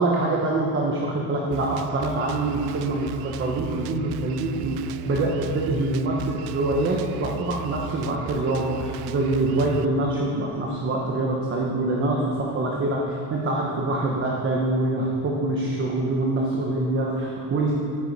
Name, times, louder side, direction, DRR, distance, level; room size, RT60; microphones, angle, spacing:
voice 1, 0.0-17.8, right 2 dB, 25° right, -2 dB, 1.0 m, -25 dB
Drum kit, 1.5-9.8, right 9 dB, 60° right, 0.5 m, -37 dB
13.0 x 9.7 x 4.2 m, 2.4 s
cardioid pair, 175°, 44 cm